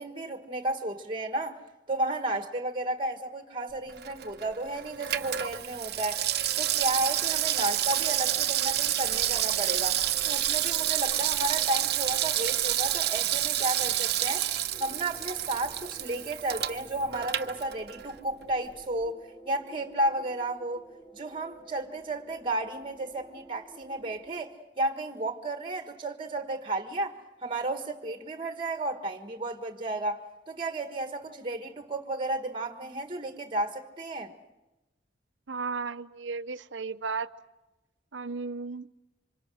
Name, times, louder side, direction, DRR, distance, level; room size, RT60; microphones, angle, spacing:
voice 1, 0.0-1.6 1.9-6.2 6.6-14.5 14.8-20.8 21.1-34.3, right 2 dB, 25° right, 1.5 m, -33 dB
Water tap faucet / Sink (filling or washing), 3.9-18.2 18.5-18.6, right 12 dB, 60° right, 0.8 m, -29 dB
sound 1, 14.7-24.4, right 2 dB, 20° left, 5.8 m, -53 dB
voice 2, 35.5-37.3 38.1-38.9, right 4 dB, 90° right, 0.8 m, -34 dB
28.0 x 25.5 x 6.3 m
head